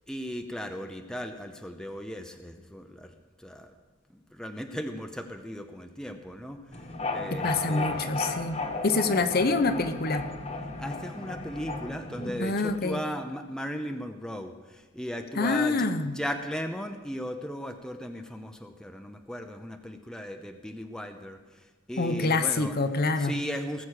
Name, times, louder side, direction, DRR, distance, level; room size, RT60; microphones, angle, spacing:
voice 1, 0.0-3.7 4.1-8.0 10.8-15.9 16.1-22.7 23.2-23.9, equal, 5° left, 5 dB, 0.7 m, -37 dB
sound 1, 6.7-12.8, left 3 dB, 30° left, 1.3 m, -34 dB
voice 2, 7.3-10.3 12.4-13.0 15.4-16.2 22.0-23.3, left 3 dB, 50° left, 8 dB, 0.9 m, -26 dB
19.0 x 7.3 x 6.5 m, 1.4 s
head